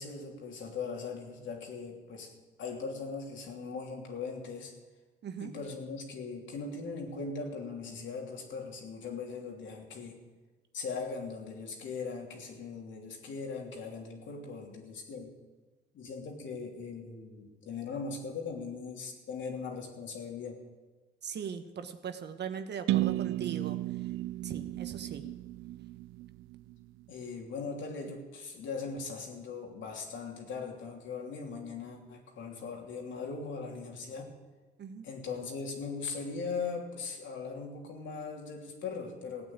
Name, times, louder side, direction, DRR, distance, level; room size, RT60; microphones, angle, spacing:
voice 1, 0.0-2.3 2.6-4.8 5.4-10.2 10.7-15.3 15.9-20.6 27.1-34.3 35.0-39.5, left 4 dB, 75° left, 1 dB, 3.1 m, -39 dB
voice 2, 21.2-23.8 24.4-25.3 34.8-35.0, right 7 dB, 60° right, 9 dB, 1.3 m, -39 dB
sound 1, 22.9-26.7, right 17 dB, 90° right, 0.4 m, -33 dB
16.0 x 8.8 x 8.7 m, 1.3 s
cardioid pair, 90°, 20 cm